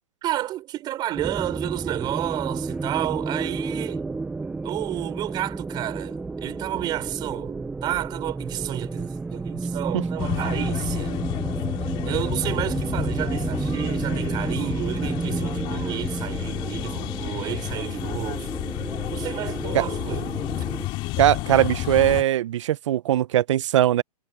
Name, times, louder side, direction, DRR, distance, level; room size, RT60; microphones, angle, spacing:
voice 1, 0.2-4.0 4.6-11.2 12.0-18.5 18.8-20.3, right 14 dB, 20° right, 5.7 m, -31 dB
sound 1, 1.1-20.9, right 3 dB, 5° right, 0.8 m, -31 dB
sound 2, 10.2-22.2, left 19 dB, 25° left, 3.5 m, -31 dB
voice 2, 21.2-24.0, right 13 dB, 50° right, 0.7 m, -20 dB
hypercardioid pair, 160°, 20 cm